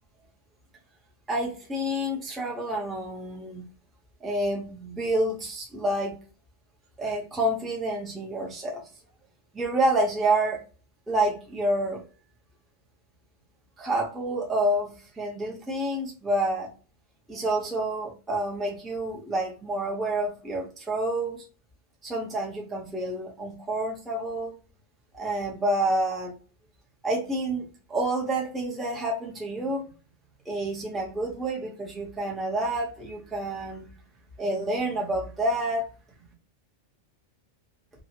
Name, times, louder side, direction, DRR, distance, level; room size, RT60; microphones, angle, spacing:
voice 1, 1.3-3.6 4.2-6.2 7.0-8.8 9.5-10.6 11.1-12.0 13.8-16.7 17.3-21.4 22.0-24.5 25.1-26.3 27.0-29.9 30.5-33.9 34.4-35.9, right 1 dB, ahead, -1 dB, 0.6 m, -28 dB
2.7 x 2.3 x 2.7 m, 0.35 s
omnidirectional pair, 1.2 m